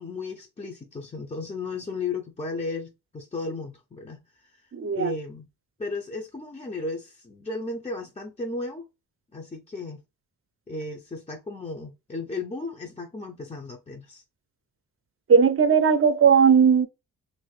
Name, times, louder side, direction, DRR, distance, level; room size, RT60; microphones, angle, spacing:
voice 1, 0.0-4.6 4.9-5.5 5.8-8.9 9.3-10.0 10.7-14.2, left 3 dB, 20° left, 0.6 m, -35 dB
voice 2, 4.7-5.1 15.3-16.9, right 6 dB, 40° right, 0.6 m, -18 dB
3.0 x 2.7 x 3.2 m
cardioid pair, 70°, 34 cm